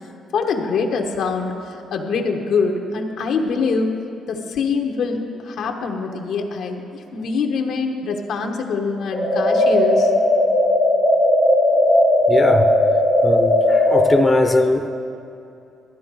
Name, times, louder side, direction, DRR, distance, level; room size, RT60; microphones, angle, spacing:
voice 1, 0.3-3.9 4.3-10.1, left 4 dB, 75° left, 3 dB, 1.1 m, -24 dB
sound 1, 9.1-14.1, left 1 dB, 70° right, 2.9 m, -16 dB
voice 2, 12.3-12.7 13.2-14.9, left 2 dB, 15° left, 5 dB, 0.7 m, -19 dB
13.0 x 9.8 x 4.7 m, 2.7 s
cardioid pair, 90°, 0 cm